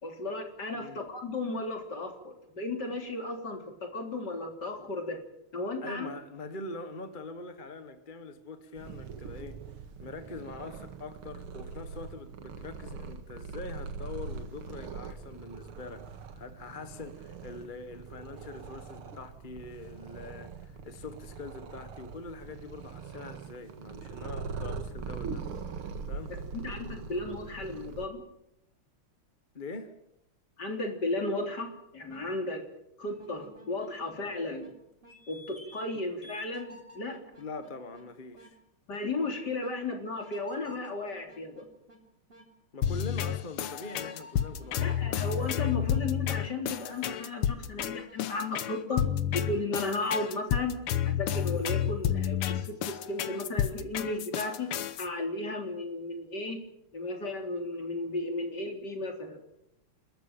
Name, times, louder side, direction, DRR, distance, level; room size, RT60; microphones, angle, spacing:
voice 1, 0.0-5.2 5.5-6.1 26.3-28.2 30.6-32.6 33.0-34.7 35.3-37.2 38.9-41.7 44.8-49.0 49.3-50.8 51.1-54.7 55.0-56.6 56.9-59.5, left 2 dB, 50° left, 4.0 m, -34 dB
voice 2, 5.8-9.6 10.0-25.5 26.1-26.3 29.5-30.0 37.4-38.6 42.7-45.2, left 3 dB, 30° left, 1.2 m, -43 dB
Purr, 8.7-28.1, right 5 dB, 80° right, 2.5 m, -42 dB
sound 1, 31.4-31.6 32.1-32.2 33.0-34.7 35.0-35.9 36.2-38.0 38.3-38.5 38.9-39.0 39.6-39.7 40.2-42.0 42.3-42.5 42.8-43.0 43.7-45.5 45.9-46.0 46.4-46.6 47.1-47.2 47.8-49.4 49.7-49.9 50.3-50.4, equal, 25° right, 3.8 m, -53 dB
sound 2, 42.8-55.1, left 10 dB, 85° left, 2.0 m, -30 dB
29.0 x 13.5 x 8.8 m
omnidirectional pair, 2.4 m